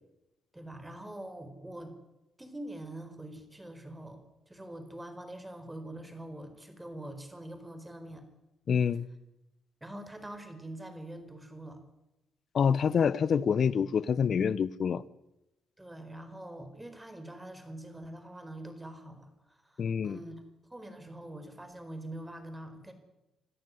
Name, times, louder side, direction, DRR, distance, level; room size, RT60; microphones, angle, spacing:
voice 1, 0.5-2.0 2.4-8.2 9.8-11.8 15.8-20.3 20.7-22.9, right 1 dB, 10° right, 4.6 m, -44 dB
voice 2, 8.7-9.1 12.5-15.0 19.8-20.2, left 7 dB, 55° left, 0.9 m, -26 dB
27.0 x 14.0 x 9.7 m
cardioid pair, 90°, 0 cm